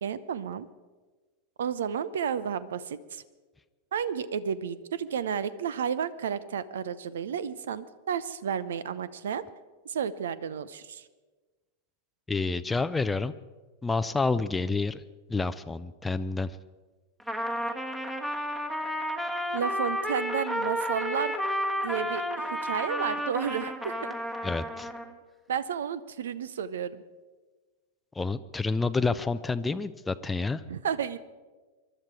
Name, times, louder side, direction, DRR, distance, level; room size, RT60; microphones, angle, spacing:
voice 1, 0.0-0.7 1.6-3.2 3.9-9.4 9.8-11.1 19.5-21.4 21.8-22.2 22.5-24.1 25.5-27.0 30.7-31.2, right 7 dB, 60° right, 17 dB, 0.7 m, -32 dB
voice 2, 12.3-13.3 13.8-15.0 15.3-16.6 24.4-24.9 28.1-30.6, left 3 dB, 10° left, 11 dB, 0.5 m, -29 dB
Trumpet, 17.2-25.1, equal, 5° right, 1.5 m, -32 dB
23.5 x 12.0 x 4.7 m, 1.3 s
figure-of-eight pair, 90°, 0 cm